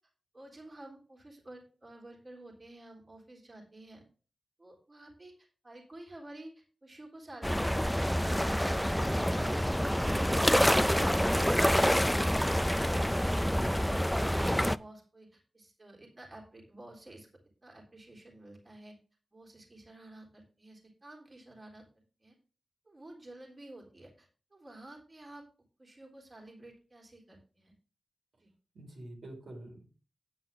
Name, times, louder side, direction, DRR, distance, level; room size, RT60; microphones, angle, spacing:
voice 1, 0.3-4.0 4.6-8.6 14.3-17.3 17.6-19.0 19.3-22.3 22.9-25.4 25.8-27.7 28.4-28.5, right 1 dB, 35° right, -1 dB, 3.7 m, -51 dB
sound 1, 7.4-14.8, equal, 5° left, 0.4 m, -27 dB
voice 2, 9.2-9.7 28.7-29.8, right 1 dB, 75° right, 0 dB, 4.5 m, -45 dB
9.4 x 9.4 x 3.7 m, 0.37 s
wide cardioid pair, 85°, 0 cm